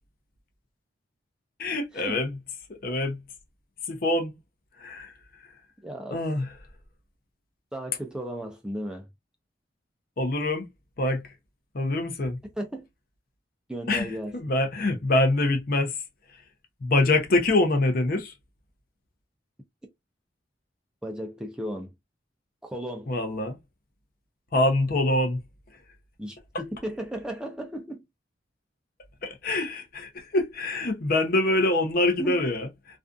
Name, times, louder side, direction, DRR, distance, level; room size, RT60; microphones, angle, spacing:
voice 1, 1.6-2.3 2.7-3.2 3.9-4.4 4.8-5.1 6.1-6.5 10.2-10.7 11.0-11.3 11.7-12.4 13.9-16.0 16.8-18.3 23.1-23.6 24.5-25.4 29.2-33.0, left 2 dB, 50° left, 0.6 m, -25 dB
voice 2, 5.8-6.2 7.7-9.1 12.6-12.9 13.7-14.3 21.0-21.9 22.6-23.1 26.2-28.0 32.2-32.4, right 1 dB, 5° right, 0.4 m, -35 dB
2.5 x 2.3 x 2.3 m
head